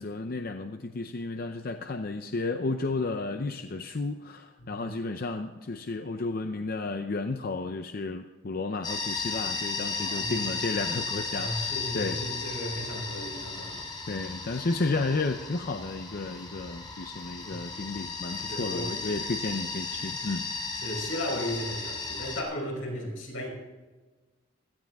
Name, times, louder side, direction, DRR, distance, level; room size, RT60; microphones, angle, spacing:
voice 1, 0.0-12.2 14.1-20.5 21.3-21.4, left 3 dB, 50° left, 6 dB, 0.6 m, -32 dB
sound 1, 8.8-22.4, left 4 dB, 25° left, 2.4 m, -35 dB
voice 2, 9.9-10.5 11.3-14.2 14.5-14.6 17.3-17.6 18.4-19.0 20.8-23.5, equal, 85° left, -1 dB, 5.4 m, -36 dB
16.5 x 13.0 x 3.6 m, 1.3 s
head